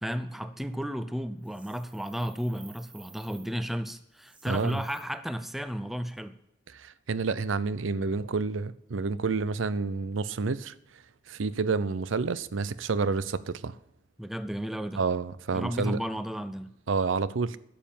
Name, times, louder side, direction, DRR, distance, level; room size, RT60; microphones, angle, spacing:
voice 1, 0.0-6.4 14.2-15.0 15.5-16.7, equal, ahead, 0.5 m, -33 dB
sound 1, 1.4-3.5 4.1-5.0, right 5 dB, 25° right, 2.0 m, -55 dB
voice 2, 4.5-4.8 6.7-10.7 11.3-13.8 15.0-16.0 16.9-17.6, right 4 dB, 85° right, 0.6 m, -29 dB
12.0 x 7.3 x 7.1 m
head